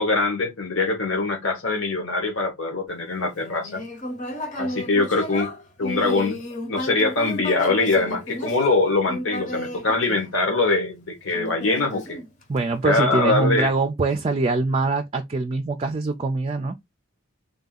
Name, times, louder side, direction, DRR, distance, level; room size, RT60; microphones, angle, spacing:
voice 1, 0.0-3.8 4.6-5.5 5.8-6.4 6.7-12.2 12.8-13.7, left 3 dB, 65° left, 1.4 m, -23 dB
Human voice, 3.4-10.7 11.3-12.8, left 1 dB, 40° left, 1.0 m, -33 dB
voice 2, 12.5-16.8, right 3 dB, 30° right, 0.4 m, -23 dB
3.6 x 2.7 x 3.9 m
head